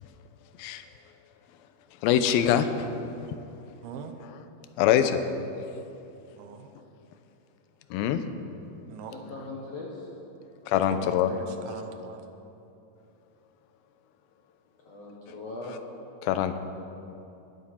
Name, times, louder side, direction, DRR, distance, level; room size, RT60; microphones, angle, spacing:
voice 1, 2.0-3.1 4.8-5.2 7.9-8.2 10.7-11.3 16.2-16.5, left 10 dB, 80° left, 10 dB, 2.3 m, -24 dB
voice 2, 3.8-4.1 6.4-6.7 8.9-9.1 10.9-12.2, right 6 dB, 80° right, 6 dB, 2.8 m, -41 dB
voice 3, 9.1-10.1 14.8-15.8, left 3 dB, 65° left, -3 dB, 1.7 m, -39 dB
22.0 x 9.5 x 4.4 m, 2.8 s
omnidirectional pair, 4.6 m